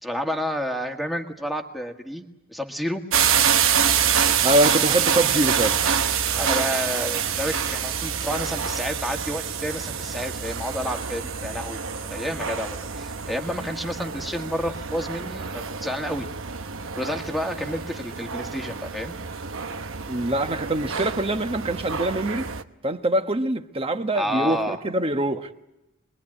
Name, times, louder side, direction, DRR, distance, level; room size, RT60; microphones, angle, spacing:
voice 1, 0.0-3.0 6.4-11.8 12.1-16.3 16.9-19.2 24.1-24.8, equal, ahead, 1.8 m, -30 dB
sound 1, 3.1-22.6, right 7 dB, 65° right, 1.0 m, -26 dB
voice 2, 4.4-5.8 20.1-22.5 22.8-25.5, right 1 dB, 25° right, 1.2 m, -24 dB
25.5 x 21.5 x 10.0 m
head